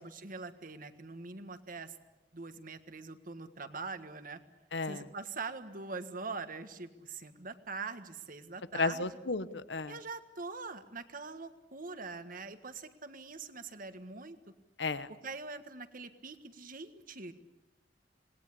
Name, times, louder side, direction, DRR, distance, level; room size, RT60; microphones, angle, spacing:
voice 1, 0.0-2.0 2.3-4.4 4.8-9.1 9.9-14.4 15.2-17.3, right 4 dB, 50° right, 10 dB, 1.6 m, -43 dB
voice 2, 4.7-5.0 8.7-10.0 14.8-15.1, left 3 dB, 85° left, 13 dB, 1.1 m, -33 dB
27.5 x 20.0 x 8.4 m, 1.0 s
head